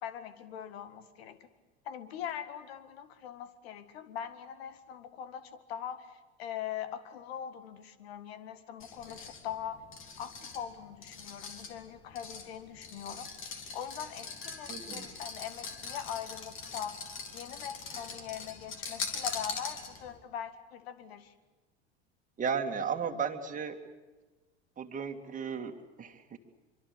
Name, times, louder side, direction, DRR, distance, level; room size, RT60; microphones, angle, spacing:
voice 1, 0.0-1.5 1.8-9.8 10.2-13.3 13.7-17.0 17.3-21.3, left 9 dB, 65° left, 13 dB, 2.0 m, -42 dB
sound 1, 8.8-20.2, left 5 dB, 40° left, 3.4 m, -42 dB
voice 2, 14.7-15.1 22.4-23.8 24.8-26.4, right 6 dB, 25° right, 4 dB, 2.3 m, -35 dB
25.0 x 24.5 x 8.2 m, 1.2 s
figure-of-eight pair, 75°, 33 cm